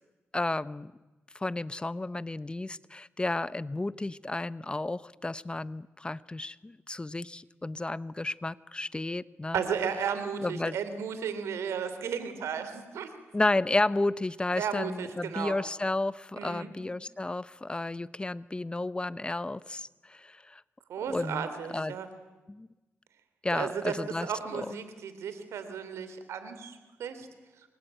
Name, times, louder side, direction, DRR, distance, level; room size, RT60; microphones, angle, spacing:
voice 1, 0.3-0.9 1.3-9.6 10.4-10.8 13.3-20.6 21.0-21.5 21.7-22.0 22.5-22.7 23.4-24.7, left 2 dB, 20° left, 17 dB, 0.8 m, -32 dB
voice 2, 9.5-13.1 14.6-15.5 16.4-16.7 20.9-22.1 23.5-24.0 24.2-27.3, right 7 dB, 90° right, 10 dB, 3.4 m, -34 dB
27.0 x 22.5 x 9.1 m, 1.1 s
cardioid pair, 65°, 5 cm